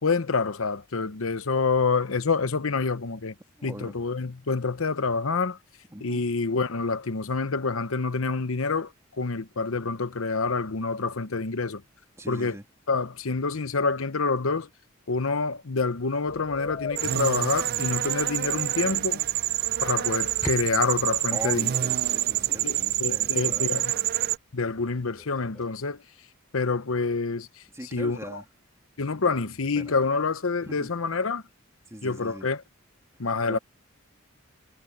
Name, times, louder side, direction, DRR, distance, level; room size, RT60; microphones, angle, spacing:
voice 1, 0.0-3.3 3.6-5.6 6.0-8.9 9.2-11.8 12.3-12.5 12.9-14.7 15.1-19.2 19.8-21.7 22.6-23.9 24.5-26.0 26.5-27.5 27.9-28.2 29.0-31.4 32.0-32.6 33.2-33.6, left 4 dB, 70° left, 0.9 m, -27 dB
voice 2, 3.6-4.0 5.9-6.3 12.2-12.7 21.3-24.1 27.7-28.5 29.2-29.3 29.7-30.1 30.6-31.0 31.9-32.5 33.1-33.6, right 1 dB, 15° right, 2.6 m, -41 dB
sound 1, 16.2-23.8, left 5 dB, 40° left, 0.6 m, -44 dB
sound 2, 17.0-24.4, right 13 dB, 45° right, 0.4 m, -27 dB
sound 3, 19.7-25.7, equal, 5° left, 3.1 m, -46 dB
head